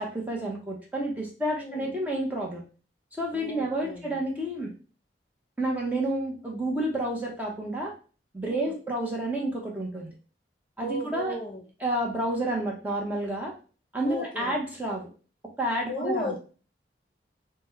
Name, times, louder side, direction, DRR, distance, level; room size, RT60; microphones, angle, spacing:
voice 1, 0.0-2.6 3.2-4.7 5.6-7.9 8.3-10.1 10.8-11.3 11.8-13.5 13.9-15.1 15.6-16.3, right 1 dB, 10° right, -2 dB, 0.8 m, -30 dB
voice 2, 1.5-2.0 3.3-4.2 8.5-8.7 10.8-11.6 14.0-14.5 15.8-16.4, left 1 dB, 30° left, 1 dB, 0.9 m, -35 dB
4.0 x 2.2 x 4.6 m, 0.37 s
head